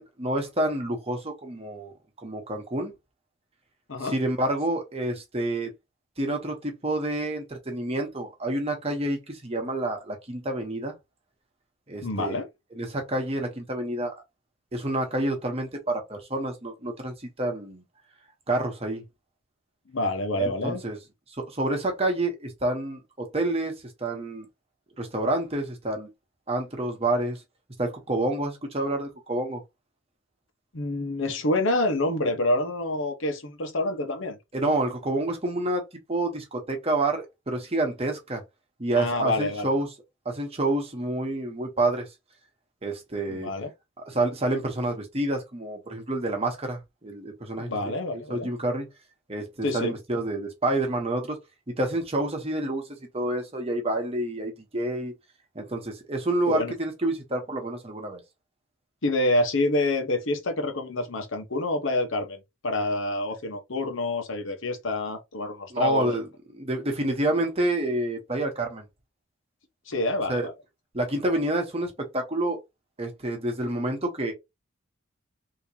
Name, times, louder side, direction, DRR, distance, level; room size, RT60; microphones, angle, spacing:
voice 1, 0.0-2.9 4.0-5.7 6.2-10.9 11.9-12.4 12.8-14.1 14.7-17.8 18.5-19.0 20.4-21.0 21.4-24.5 25.0-26.1 26.5-27.4 27.8-29.6 34.5-35.8 36.1-38.4 38.8-39.9 40.2-42.1 42.8-43.5 44.0-48.9 49.3-51.4 51.7-52.8 53.1-55.1 55.5-58.2 65.7-66.3 66.5-68.9 70.3-70.5 70.9-72.6 73.0-74.3, right 1 dB, 30° right, 1.1 m, -28 dB
voice 2, 12.0-12.5 19.9-20.8 30.7-34.4 39.0-39.7 43.3-43.7 47.6-48.5 49.6-49.9 56.5-56.7 59.0-66.1 69.9-70.5, left 2 dB, 75° left, 1.0 m, -27 dB
3.7 x 2.9 x 2.8 m
head